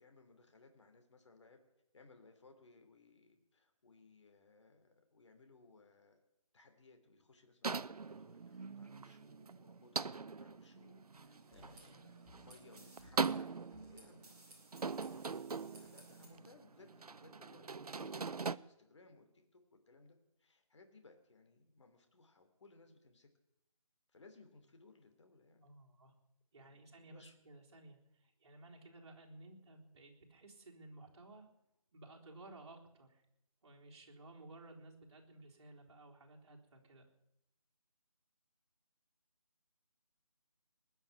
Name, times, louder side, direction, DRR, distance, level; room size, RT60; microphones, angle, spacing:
voice 1, 0.0-1.6 1.9-6.2 6.5-14.4 14.7-15.3 15.7-23.3 24.1-25.7 26.5-27.3, left 3 dB, 50° left, 5 dB, 2.9 m, -63 dB
sound 1, 7.6-18.6, right 4 dB, 85° right, 0.6 m, -42 dB
sound 2, 11.2-16.3, right 1 dB, 10° right, 3.5 m, -61 dB
voice 2, 11.5-12.0 25.6-26.1 26.5-31.5 31.9-33.2 33.6-37.1, right 2 dB, 50° right, -1 dB, 3.9 m, -56 dB
20.0 x 7.1 x 9.5 m, 0.82 s
figure-of-eight pair, 160°, 19 cm